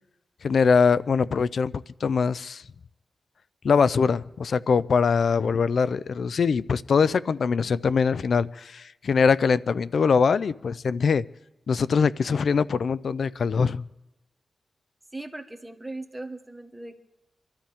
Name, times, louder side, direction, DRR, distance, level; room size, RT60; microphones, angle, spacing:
voice 1, 0.4-2.6 3.6-11.2 11.7-13.8, left 5 dB, 70° left, 17 dB, 0.4 m, -23 dB
voice 2, 15.1-17.0, right 2 dB, 15° right, 6 dB, 1.4 m, -38 dB
26.0 x 13.0 x 3.5 m, 0.97 s
cardioid pair, 75°, 0 cm